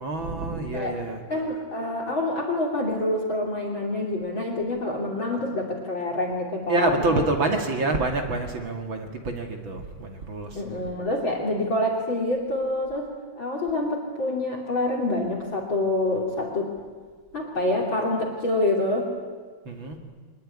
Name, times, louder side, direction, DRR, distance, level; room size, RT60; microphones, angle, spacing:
voice 1, 0.0-1.2 6.7-10.6 19.7-20.0, right 2 dB, 40° right, 4 dB, 2.1 m, -27 dB
voice 2, 1.3-7.0 10.5-13.1 13.4-16.7 17.3-19.1, left 1 dB, 35° left, 2 dB, 3.1 m, -26 dB
24.5 x 20.5 x 9.9 m, 1.5 s
omnidirectional pair, 4.6 m